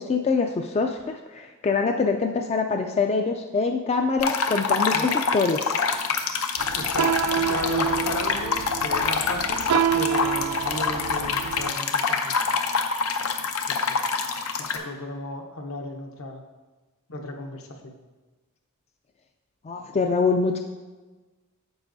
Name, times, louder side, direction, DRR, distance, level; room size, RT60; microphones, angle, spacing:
voice 1, 0.0-5.8 19.6-20.6, left 4 dB, 30° left, 5 dB, 0.3 m, -24 dB
sound 1, 4.2-14.8, left 5 dB, 85° left, 0.7 m, -26 dB
voice 2, 4.9-5.4 6.7-9.7 9.9-12.3 13.7-14.0 14.6-16.4 17.1-17.9, left 1 dB, 70° left, 3 dB, 1.0 m, -35 dB
sound 2, 6.6-11.7, right 9 dB, 85° right, 0.3 m, -28 dB
9.5 x 7.3 x 2.6 m, 1.2 s
head